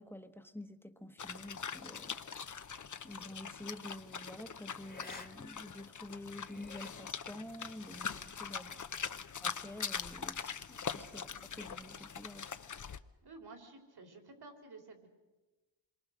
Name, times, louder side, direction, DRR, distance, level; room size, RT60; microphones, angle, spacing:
voice 1, 0.0-2.2 3.0-8.8 9.4-11.3 11.6-12.6, left 1 dB, 5° left, 9 dB, 1.3 m, -49 dB
sound 1, 1.2-13.0, left 6 dB, 45° left, 0.9 m, -43 dB
sound 2, 3.2-3.5 4.8-5.3 5.6-5.7 6.2-6.9, left 2 dB, 20° left, 1.6 m, -51 dB
voice 2, 13.2-15.1, right 3 dB, 60° right, 5 dB, 3.9 m, -53 dB
26.5 x 23.0 x 6.5 m, 1.1 s
wide cardioid pair, 95°, 43 cm